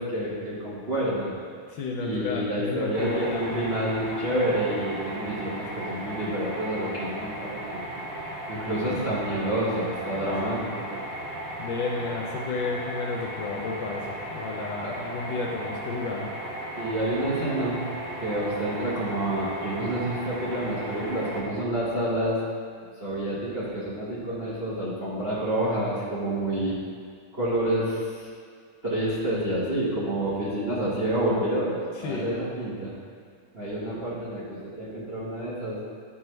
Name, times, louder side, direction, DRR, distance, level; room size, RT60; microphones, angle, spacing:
voice 1, 0.0-1.3 2.0-7.8 8.5-11.0 14.8-15.0 16.8-17.8 18.2-22.4 23.0-26.7 27.3-28.3 28.8-32.9 33.5-35.8, right 1 dB, 40° right, -9 dB, 1.0 m, -28 dB
voice 2, 1.7-3.2 10.1-10.5 11.6-16.3 31.9-32.3, left 3 dB, 75° left, -1 dB, 1.2 m, -32 dB
sound 1, 2.9-21.4, right 1 dB, 75° right, 2.0 m, -36 dB
10.5 x 3.6 x 3.1 m, 2.1 s
omnidirectional pair, 2.4 m